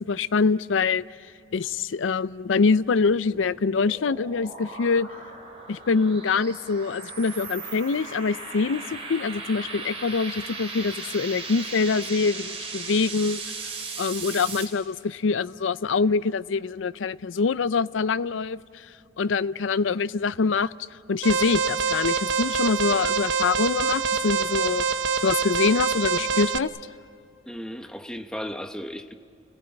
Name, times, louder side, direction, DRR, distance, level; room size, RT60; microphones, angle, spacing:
voice 1, 0.1-1.0 1.5-5.1 5.7-13.4 14.0-18.6 19.2-20.7 21.1-24.9 25.2-26.7, left 4 dB, 90° left, 0.5 m, -24 dB
sound 1, 2.8-14.6, right 4 dB, 30° right, 3.7 m, -37 dB
Alarm, 21.2-26.6, right 5 dB, 80° right, 0.9 m, -25 dB
voice 2, 27.5-29.1, equal, 5° left, 0.8 m, -35 dB
29.5 x 18.5 x 9.0 m
head